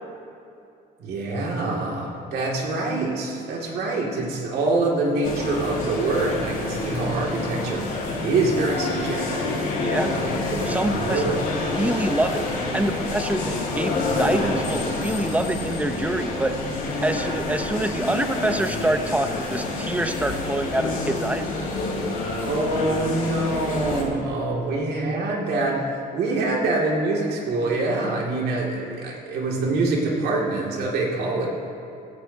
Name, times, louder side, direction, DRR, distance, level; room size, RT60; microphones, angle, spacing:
voice 1, 1.0-7.9 8.2-9.6 10.1-11.4 22.4-31.5, right 2 dB, 70° right, -2 dB, 2.5 m, -25 dB
sound 1, 5.2-24.0, left 2 dB, 60° left, 3.1 m, -28 dB
voice 2, 9.8-10.1 10.7-16.6 17.0-21.5, right 1 dB, 10° right, 6 dB, 0.9 m, -26 dB
16.0 x 15.0 x 2.9 m, 2.6 s
cardioid pair, 110°, 17 cm